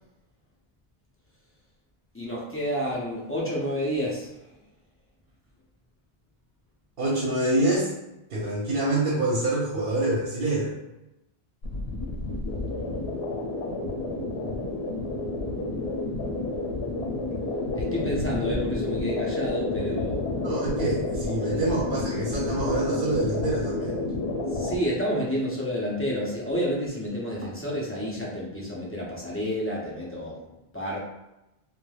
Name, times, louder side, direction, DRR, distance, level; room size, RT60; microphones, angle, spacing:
voice 1, 2.1-4.3 17.7-20.2 21.4-21.6 24.5-30.5 30.7-31.0, equal, 20° left, -5 dB, 0.3 m, -30 dB
voice 2, 7.0-7.9 8.3-10.7 20.4-24.0, right 2 dB, 70° right, -4 dB, 0.7 m, -26 dB
sound 1, 11.6-24.8, left 2 dB, 80° left, 0.8 m, -30 dB
3.1 x 2.1 x 2.3 m, 0.93 s
omnidirectional pair, 1.0 m